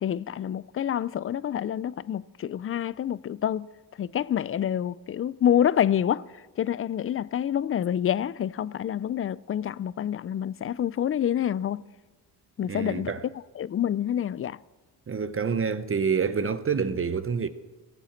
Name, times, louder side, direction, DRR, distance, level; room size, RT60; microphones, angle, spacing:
voice 1, 0.0-3.7 4.0-6.2 6.6-11.8 12.6-13.1 13.6-14.6, left 10 dB, 35° left, 0.4 m, -27 dB
voice 2, 12.7-13.3 15.1-17.5, right 6 dB, 35° right, 0.8 m, -27 dB
16.5 x 7.3 x 7.1 m
cardioid pair, 75°, 39 cm